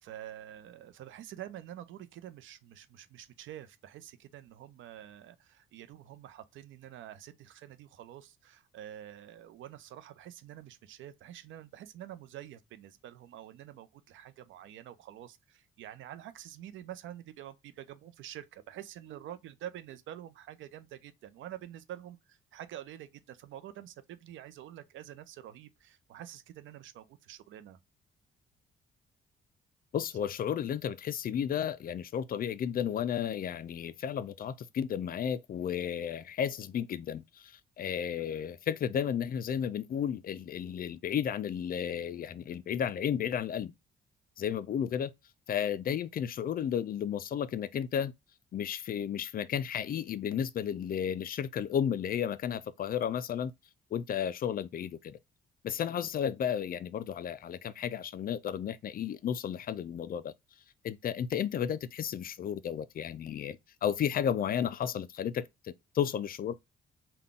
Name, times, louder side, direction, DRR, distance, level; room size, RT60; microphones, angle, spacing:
voice 1, 0.0-27.8, right 11 dB, 75° right, 0.5 m, -47 dB
voice 2, 29.9-43.7 44.4-45.1 45.5-48.1 48.5-53.5 53.9-55.2 55.6-60.3 60.8-66.5, left 8 dB, 45° left, 0.4 m, -33 dB
3.8 x 2.2 x 3.5 m
cardioid pair, 90°, 20 cm